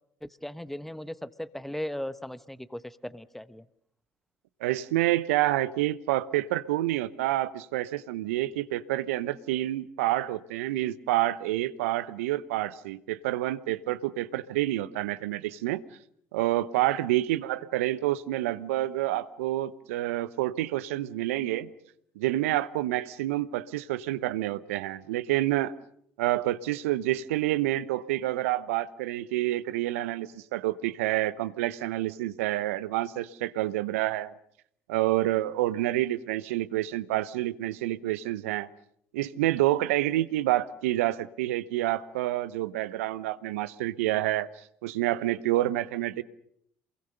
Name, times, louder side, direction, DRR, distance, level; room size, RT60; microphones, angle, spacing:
voice 1, 0.2-3.7, left 1 dB, 5° left, 15 dB, 1.2 m, -37 dB
voice 2, 4.6-15.8 16.3-21.7 22.2-25.7 26.2-34.3 34.9-38.7 39.1-44.5 44.8-46.2, right 15 dB, 80° right, 16 dB, 0.9 m, -28 dB
28.0 x 22.0 x 6.7 m, 0.70 s
hypercardioid pair, 55°, 7 cm